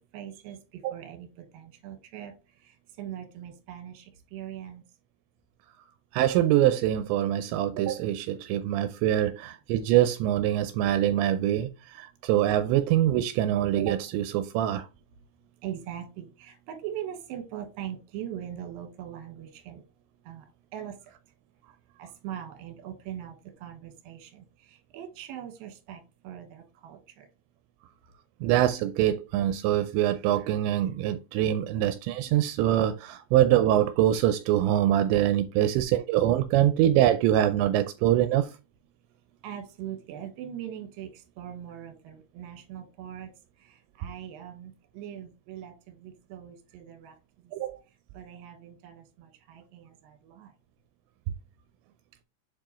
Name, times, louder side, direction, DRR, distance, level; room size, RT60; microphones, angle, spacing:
voice 1, 0.1-0.6 0.9-1.3 1.5-2.3 3.0-4.0 4.3-4.8 15.6-19.8 20.3-20.4 20.7-20.9 22.0-23.3 23.6-24.4 24.9-27.2 39.4-41.1 41.4-43.3 44.0-47.1 48.1-50.5, right 10 dB, 65° right, 2.7 m, -41 dB
voice 2, 6.1-14.9 28.4-38.5 47.5-47.8, right 12 dB, 85° right, 2.7 m, -24 dB
7.4 x 4.6 x 3.0 m
omnidirectional pair, 5.1 m